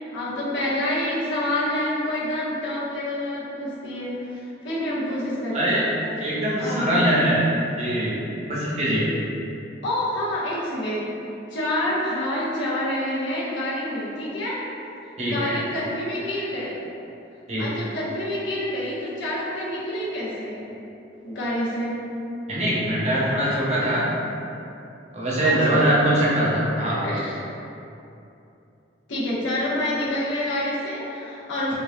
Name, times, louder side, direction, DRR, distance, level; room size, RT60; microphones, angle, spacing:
voice 1, 0.1-5.9 6.6-7.2 9.8-11.1 11.5-14.6 15.2-16.8 17.6-20.6 21.2-22.0 25.4-26.0 27.0-27.4 29.1-31.7, left 1 dB, 80° left, -7 dB, 0.9 m, -27 dB
voice 2, 6.2-7.4 7.8-8.2 8.5-9.1 15.2-15.5 17.5-17.7 22.5-24.1 25.1-27.0, right 1 dB, 35° right, -7 dB, 0.8 m, -22 dB
5.0 x 2.5 x 2.2 m, 2.7 s
head